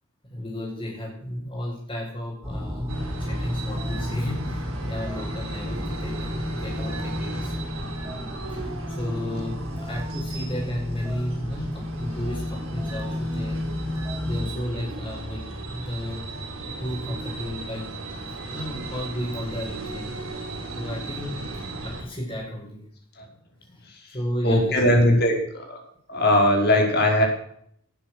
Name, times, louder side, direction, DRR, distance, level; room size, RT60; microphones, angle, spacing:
voice 1, 0.2-7.5 8.5-13.6 14.2-17.9 18.5-20.1 20.7-22.8 23.7-23.8 24.1-25.0, left 1 dB, 25° left, -7 dB, 6.3 m, -33 dB
sound 1, 2.4-14.5, left 1 dB, 15° right, 4.6 m, -32 dB
sound 2, 2.9-22.0, right 2 dB, 75° right, 4.6 m, -36 dB
voice 2, 24.4-25.8 26.1-27.2, left 1 dB, 50° left, 2 dB, 5.1 m, -20 dB
19.0 x 10.0 x 6.5 m, 0.66 s
head